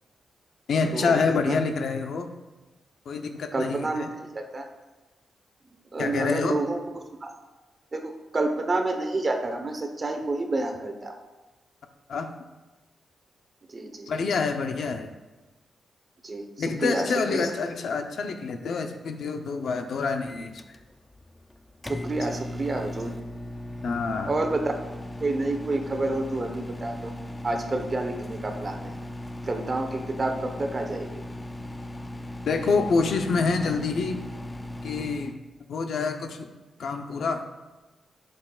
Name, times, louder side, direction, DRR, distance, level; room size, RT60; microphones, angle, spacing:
voice 1, 0.7-2.3 3.1-4.1 6.0-6.6 12.1-12.3 14.1-15.1 16.6-20.8 22.2-22.3 23.8-24.3 32.5-34.2 34.8-35.3 35.7-36.5 36.8-37.4, left 4 dB, 65° left, 6 dB, 0.7 m, -27 dB
voice 2, 3.5-4.0 4.3-4.6 5.9-6.8 7.2-7.3 7.9-11.2 13.7-14.1 16.2-16.4 16.8-17.0 17.3-17.4 22.0-23.1 24.3-24.7 25.2-27.1 27.4-28.9 29.5-31.1, right 2 dB, 30° right, 4 dB, 1.0 m, -28 dB
Microwave oven, 20.3-35.4, left 1 dB, 15° left, 0.4 m, -38 dB
11.5 x 6.5 x 2.4 m, 1.2 s
wide cardioid pair, 130°, 0 cm